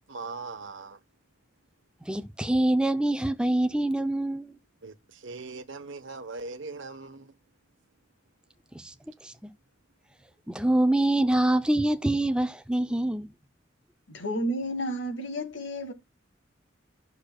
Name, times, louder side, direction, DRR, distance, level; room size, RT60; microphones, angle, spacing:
voice 1, 0.1-1.0 4.8-7.4, right 3 dB, 75° right, 1.0 m, -40 dB
voice 2, 2.0-4.6 8.7-8.9 9.2-9.5 10.5-13.3, right 1 dB, 5° right, 0.4 m, -25 dB
voice 3, 14.1-15.9, equal, 70° left, 1.5 m, -31 dB
12.0 x 6.5 x 2.3 m
head